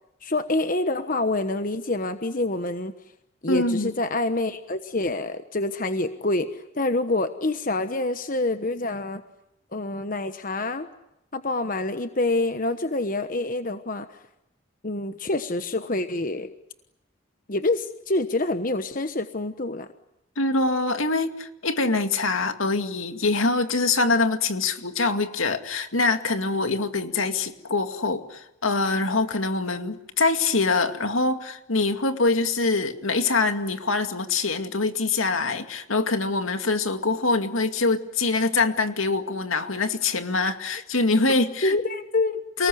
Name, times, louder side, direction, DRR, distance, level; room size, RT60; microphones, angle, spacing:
voice 1, 0.2-2.9 3.4-9.2 9.7-10.9 11.3-14.1 14.8-16.5 17.5-19.9 41.6-42.7, left 2 dB, 40° left, 9 dB, 1.2 m, -26 dB
voice 2, 3.5-3.9 20.4-41.8 42.6-42.7, left 3 dB, 80° left, 7 dB, 2.3 m, -24 dB
29.5 x 19.5 x 9.6 m, 0.86 s
head